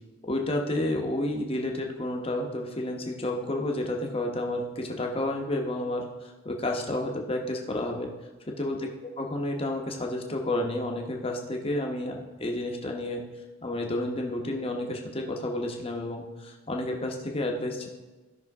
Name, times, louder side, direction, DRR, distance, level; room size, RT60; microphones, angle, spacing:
voice 1, 0.2-8.1 8.6-8.8 9.2-13.2 13.6-17.9, left 1 dB, 25° left, 1 dB, 1.0 m, -30 dB
15.5 x 5.9 x 3.6 m, 1.2 s
head